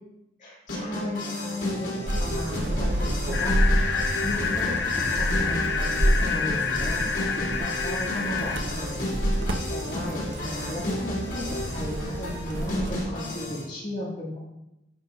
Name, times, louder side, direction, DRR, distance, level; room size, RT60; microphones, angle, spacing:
voice 1, 0.4-14.4, left 1 dB, 40° left, -5 dB, 2.3 m, -35 dB
sound 1, 0.7-13.6, left 1 dB, 85° left, 3.1 m, -33 dB
sound 2, 2.1-13.0, right 1 dB, 90° right, 1.0 m, -29 dB
sound 3, 3.3-8.6, left 5 dB, 65° left, 0.8 m, -28 dB
15.0 x 5.5 x 2.5 m, 0.92 s
head